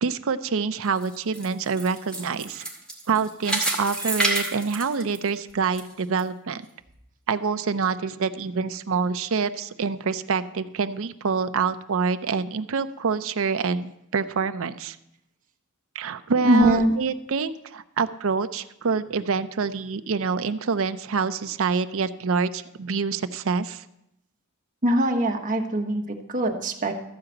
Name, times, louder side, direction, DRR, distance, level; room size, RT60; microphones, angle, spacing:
voice 1, 0.0-2.6 3.1-6.6 7.3-15.0 15.9-23.8, right 5 dB, 65° right, 11 dB, 0.6 m, -26 dB
sound 1, 0.8-5.8 6.2-6.3 6.9-7.0, right 1 dB, 5° left, 2.1 m, -29 dB
voice 2, 16.4-16.9 24.8-26.9, right 1 dB, 40° right, 3 dB, 1.3 m, -22 dB
13.5 x 4.9 x 7.8 m, 0.81 s
head